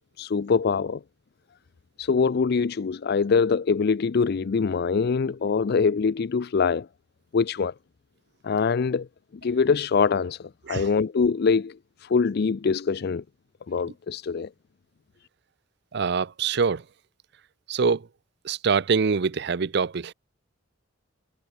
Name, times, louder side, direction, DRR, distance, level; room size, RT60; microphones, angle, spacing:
voice 1, 0.2-1.0 2.0-6.9 7.3-7.7 8.4-9.1 9.4-10.4 10.7-11.7 12.0-13.2 13.7-14.5, left 5 dB, 55° left, 0.4 m, -23 dB
voice 2, 15.9-16.8 17.7-18.1 18.4-20.1, right 5 dB, 60° right, 0.6 m, -24 dB
head